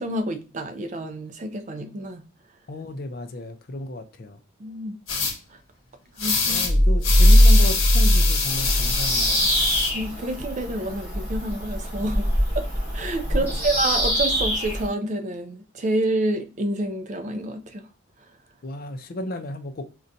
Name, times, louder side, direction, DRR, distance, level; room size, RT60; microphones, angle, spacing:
voice 1, 0.0-2.2 4.6-5.0 6.2-6.6 9.9-12.3 12.6-12.7 12.9-17.9, right 1 dB, 35° right, 0.3 m, -28 dB
voice 2, 2.7-4.4 6.4-9.5 13.3-13.5 18.6-19.8, left 1 dB, 45° left, 0.4 m, -34 dB
sound 1, 5.1-5.3 6.2-6.7 7.0-9.9, left 5 dB, 75° left, 0.9 m, -25 dB
sound 2, 6.6-9.6, equal, 70° right, 0.9 m, -17 dB
Bird vocalization bird call bird song, 8.5-14.9, equal, 10° right, 1.1 m, -26 dB
3.9 x 2.2 x 2.6 m
head